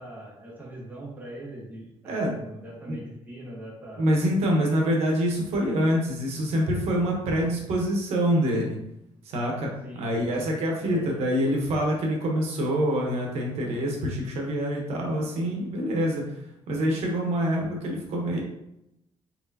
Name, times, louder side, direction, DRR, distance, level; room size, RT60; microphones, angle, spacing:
voice 1, 0.0-4.1 9.8-10.4 10.8-11.2, right 1 dB, 15° right, -5 dB, 1.3 m, -41 dB
voice 2, 4.0-8.8 9.2-9.7 10.0-16.2 16.7-18.4, equal, 85° right, -1 dB, 1.0 m, -25 dB
4.4 x 4.0 x 2.8 m, 0.85 s
cardioid pair, 175°, 11 cm